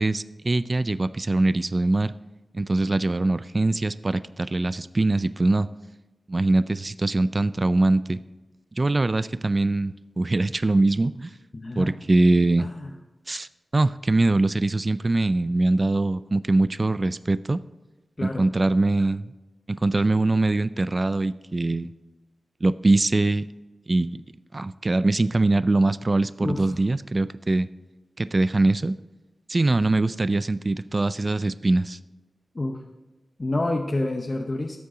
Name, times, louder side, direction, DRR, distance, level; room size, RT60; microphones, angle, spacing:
voice 1, 0.0-2.1 2.5-5.7 6.3-8.2 8.7-11.3 11.8-12.7 13.3-17.6 18.2-19.3 19.7-21.9 22.6-23.5 23.9-24.2 24.5-27.7 28.2-29.0 29.5-32.0, right 2 dB, 35° right, 15 dB, 0.3 m, -22 dB
voice 2, 11.5-11.9 12.6-12.9 18.2-18.5 26.4-26.8 32.5-32.8 33.4-34.8, left 2 dB, 40° left, 2 dB, 0.8 m, -28 dB
12.5 x 8.3 x 3.8 m, 1.1 s
wide cardioid pair, 80°, 0 cm